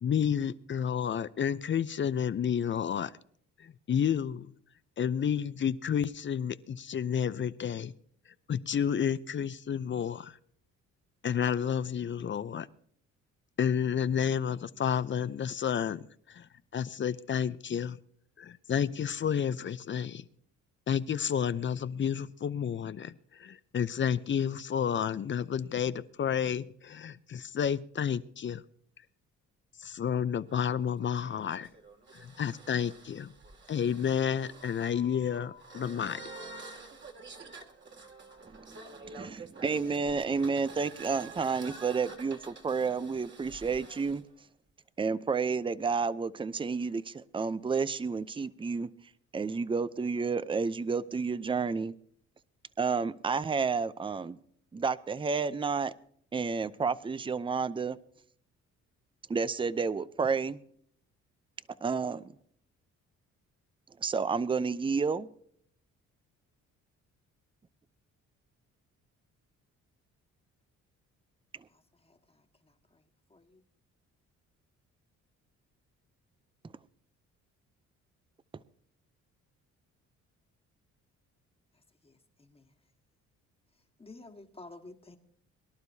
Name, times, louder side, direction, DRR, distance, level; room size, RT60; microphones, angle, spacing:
voice 1, 0.0-3.1 3.6-4.5 5.0-7.9 8.5-10.4 11.2-12.7 13.6-18.0 18.4-20.2 20.9-28.6 29.8-31.7 32.1-33.3 33.7-36.2, left 8 dB, 40° left, 0.6 m, -31 dB
sound 1, 30.5-44.2, right 3 dB, 40° right, 2.2 m, -49 dB
voice 2, 39.0-44.2 45.0-48.9 49.3-51.9 52.8-54.4 54.7-55.9 56.3-58.0 59.3-60.6 61.8-62.3 64.0-65.3, right 5 dB, 15° right, 0.5 m, -30 dB
voice 3, 84.0-85.2, left 2 dB, 20° left, 1.6 m, -49 dB
23.0 x 11.5 x 2.8 m
cardioid pair, 90°, 30 cm